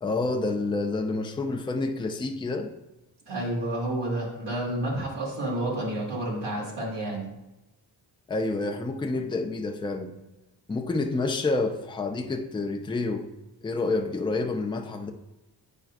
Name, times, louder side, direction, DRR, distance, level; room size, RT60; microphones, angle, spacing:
voice 1, 0.0-2.7 8.3-10.1 10.7-13.3 13.6-15.1, left 3 dB, 10° left, 0.4 m, -28 dB
voice 2, 3.3-7.3, right 1 dB, 80° right, 2.3 m, -30 dB
8.7 x 5.0 x 2.5 m
wide cardioid pair, 115°, 41 cm